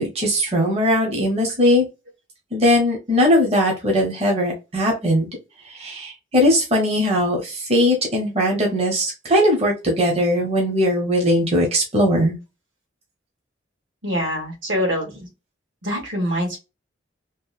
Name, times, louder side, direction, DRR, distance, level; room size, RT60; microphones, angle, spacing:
voice 1, 0.0-1.8 2.5-5.3 5.7-12.3, equal, 30° right, -1 dB, 0.6 m, -19 dB
voice 2, 14.0-15.3 15.8-16.6, equal, 80° right, 0 dB, 1.3 m, -24 dB
2.8 x 2.1 x 2.3 m, 0.27 s
head